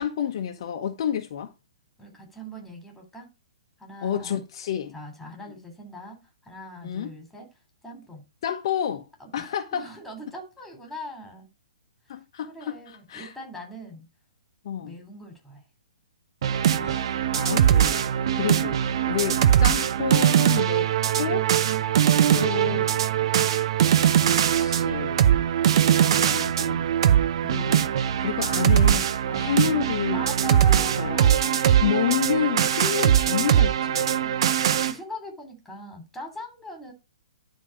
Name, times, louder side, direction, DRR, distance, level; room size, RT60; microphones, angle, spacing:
voice 1, 0.0-1.5 4.0-4.9 6.8-7.1 8.4-9.1 9.3-9.8 12.1-12.7 13.1-13.3 14.6-15.0 16.6-20.9 21.2-21.5 22.3-22.9 23.8-25.3 26.0-26.9 27.4-30.5 30.7-31.4 31.8-34.2, left 9 dB, 50° left, 1.1 m, -30 dB
voice 2, 2.0-3.3 3.8-4.4 4.9-7.5 7.8-8.3 9.2-11.5 12.5-14.1 14.8-15.6 19.3-19.5 22.1-22.9 25.6-26.6 27.0-27.1 29.3-29.5 30.1-32.3 34.2-36.9, equal, 5° left, 3.0 m, -41 dB
sound 1, 16.4-34.9, right 10 dB, 50° right, 0.7 m, -21 dB
11.0 x 3.8 x 4.7 m
figure-of-eight pair, 125°, 3 cm